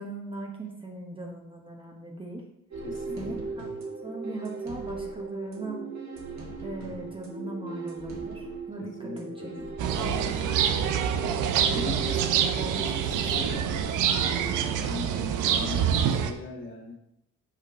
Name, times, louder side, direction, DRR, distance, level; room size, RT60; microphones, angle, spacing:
voice 1, 0.0-2.4 3.2-3.7 4.0-5.8 6.6-9.5 12.1-13.7, right 2 dB, 15° right, 0 dB, 0.9 m, -39 dB
sound 1, 2.7-14.7, right 4 dB, 60° right, 1.7 m, -38 dB
voice 2, 2.8-3.6 8.8-10.5 11.6-12.1 13.0-13.7 14.4-16.9, left 3 dB, 40° left, -4 dB, 2.2 m, -40 dB
sound 2, 9.8-16.3, right 8 dB, 85° right, 0.6 m, -26 dB
6.7 x 2.9 x 5.1 m, 0.81 s
cardioid pair, 90°, 30 cm